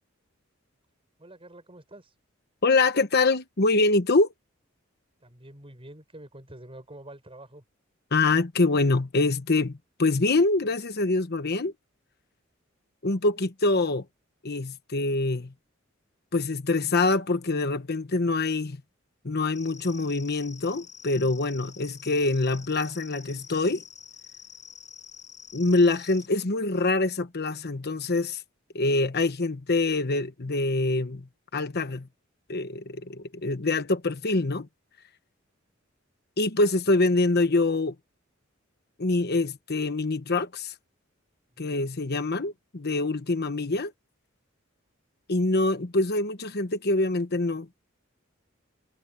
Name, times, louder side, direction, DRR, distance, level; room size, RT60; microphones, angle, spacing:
voice 1, 1.2-2.1 5.2-7.6 41.5-41.7, right 1 dB, 30° right, 7.1 m, -47 dB
voice 2, 2.6-4.3 8.1-11.7 13.0-14.0 14.4-15.5 16.3-18.8 19.2-23.8 25.5-28.4 28.7-31.3 31.5-32.1 32.5-34.7 36.4-37.9 39.0-40.7 41.6-43.9 45.3-47.8, left 2 dB, 55° left, 1.1 m, -25 dB
sound 1, 19.5-26.3, left 8 dB, 35° left, 7.6 m, -47 dB
head